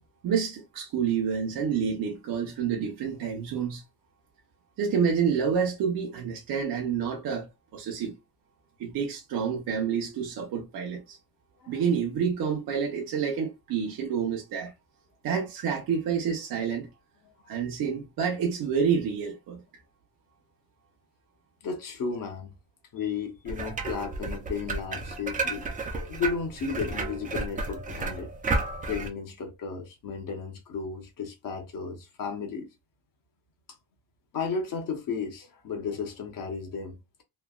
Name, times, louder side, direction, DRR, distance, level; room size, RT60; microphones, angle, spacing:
voice 1, 0.2-3.8 4.8-8.1 8.8-11.2 11.7-14.7 15.2-16.9 17.5-19.6, right 7 dB, 60° right, 0.8 m, -28 dB
voice 2, 21.6-22.5 22.9-25.6 26.1-28.3 28.9-32.7 34.3-37.0, left 5 dB, 55° left, 0.9 m, -34 dB
sound 1, 23.5-29.1, right 3 dB, 20° right, 0.4 m, -32 dB
3.2 x 2.2 x 2.3 m
cardioid pair, 155°, 40 cm